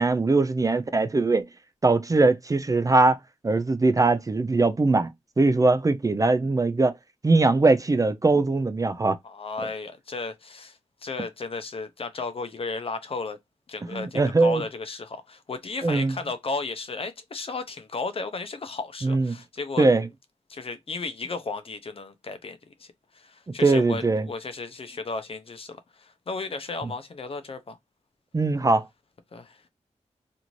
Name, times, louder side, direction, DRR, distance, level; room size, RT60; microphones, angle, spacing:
voice 1, 0.0-1.4 1.8-3.2 3.4-5.1 5.4-6.9 7.2-9.2 13.9-14.6 15.8-16.1 19.0-19.4 19.8-20.1 23.6-24.3 28.3-28.8, right 3 dB, 25° right, 0.4 m, -21 dB
voice 2, 9.2-13.4 13.7-19.9 20.5-22.9 23.1-27.8 29.3-29.6, left 3 dB, 50° left, 0.5 m, -34 dB
2.6 x 2.5 x 3.0 m
cardioid pair, 70°, 13 cm